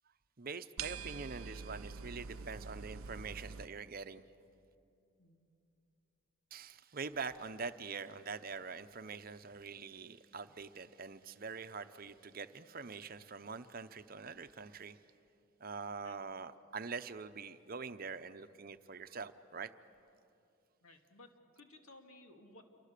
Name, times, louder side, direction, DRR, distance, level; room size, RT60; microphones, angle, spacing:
voice 1, 0.4-4.2 6.5-15.0 15.6-19.7, right 5 dB, 45° right, 11 dB, 0.8 m, -44 dB
sound 1, 0.8-3.7, right 5 dB, 80° right, 0.6 m, -45 dB
voice 2, 20.8-22.6, left 2 dB, 80° left, 4 dB, 2.4 m, -58 dB
27.5 x 24.0 x 6.7 m, 2.8 s
head